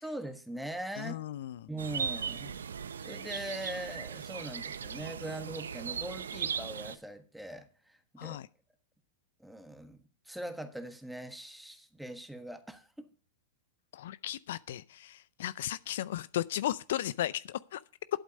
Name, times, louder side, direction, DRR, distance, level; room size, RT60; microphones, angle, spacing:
voice 1, 0.0-1.2 1.7-2.6 3.0-8.4 9.4-13.1, right 1 dB, 5° right, 1.5 m, -41 dB
voice 2, 1.0-1.7 8.2-8.5 13.9-17.8, left 12 dB, 70° left, 0.4 m, -35 dB
sound 1, 1.8-7.0, right 6 dB, 85° right, 0.6 m, -38 dB
11.5 x 8.2 x 5.3 m
hypercardioid pair, 110°, 0 cm